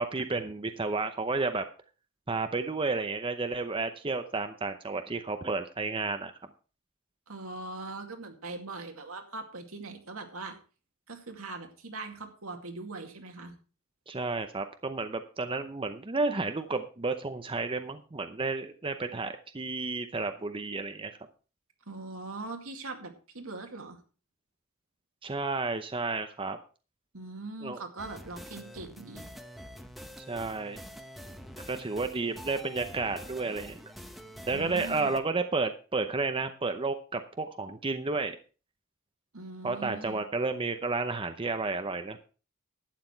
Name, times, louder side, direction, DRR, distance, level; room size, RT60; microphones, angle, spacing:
voice 1, 0.0-1.6 2.3-6.3 14.1-21.1 25.2-26.6 27.6-27.8 30.3-30.8 31.7-33.8 34.5-38.4 39.6-42.3, right 3 dB, 25° right, 7 dB, 0.7 m, -31 dB
voice 2, 7.3-10.6 11.1-13.5 21.9-24.0 27.1-29.3 34.5-35.2 39.3-40.3, right 3 dB, 75° right, 4 dB, 2.3 m, -41 dB
sound 1, 28.0-35.2, equal, ahead, 1.1 m, -46 dB
12.0 x 9.4 x 4.5 m, 0.36 s
head